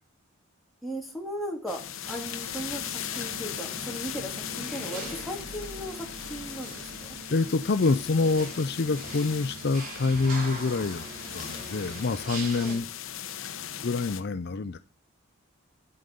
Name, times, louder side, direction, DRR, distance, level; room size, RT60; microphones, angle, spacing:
voice 1, 0.8-7.2 12.6-12.8, equal, ahead, 2.6 m, -37 dB
sound 1, 1.7-14.2, left 9 dB, 70° left, 0.9 m, -38 dB
sound 2, 2.0-12.8, right 2 dB, 40° right, 3.7 m, -42 dB
sound 3, 5.0-7.9, left 1 dB, 15° left, 1.0 m, -50 dB
voice 2, 7.3-11.1 11.3-12.9 13.8-14.8, left 3 dB, 50° left, 0.5 m, -26 dB
10.0 x 7.7 x 5.2 m
head